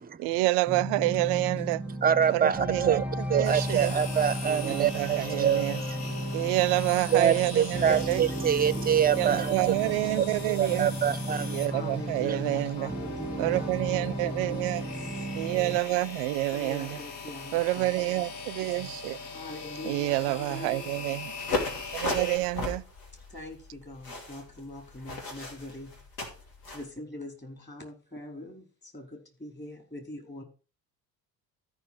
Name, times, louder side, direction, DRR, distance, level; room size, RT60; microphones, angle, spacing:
voice 1, 0.2-1.8 2.3-3.9 4.5-5.8 6.3-8.2 9.1-10.9 11.5-12.9 13.4-14.8 15.4-16.9 17.5-19.2 19.8-21.3 21.9-22.8, right 20 dB, 55° right, 0.6 m, -28 dB
sound 1, 0.7-15.8, right 1 dB, 5° right, 1.4 m, -34 dB
voice 2, 2.0-3.0 3.3-5.8 6.2-6.4 7.1-9.5 10.2-10.3 10.6-11.6 12.2-12.4, right 9 dB, 20° right, 0.7 m, -25 dB
sound 2, 3.4-22.4, left 4 dB, 55° left, 2.1 m, -41 dB
voice 3, 8.0-10.3 11.7-15.3 16.4-18.0 19.3-21.0 23.3-26.0 26.7-30.4, left 1 dB, 20° left, 4.9 m, -43 dB
sound 3, 21.4-26.9, left 2 dB, 75° left, 2.7 m, -35 dB
13.5 x 6.0 x 4.6 m
figure-of-eight pair, 55°, 49 cm